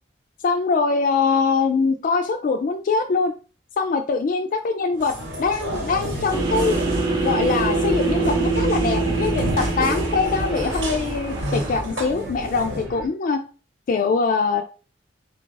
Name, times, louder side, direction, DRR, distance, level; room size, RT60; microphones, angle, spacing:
voice 1, 0.4-3.3 3.8-6.8 7.2-13.4 13.9-14.6, left 4 dB, 45° left, 4 dB, 0.3 m, -23 dB
sound 1, 4.9-12.8, right 1 dB, 85° right, 1.1 m, -31 dB
sound 2, 5.6-13.1, right 1 dB, 60° right, 0.9 m, -36 dB
sound 3, 6.3-11.8, right 3 dB, 20° right, 0.6 m, -24 dB
3.3 x 2.3 x 3.8 m, 0.36 s
head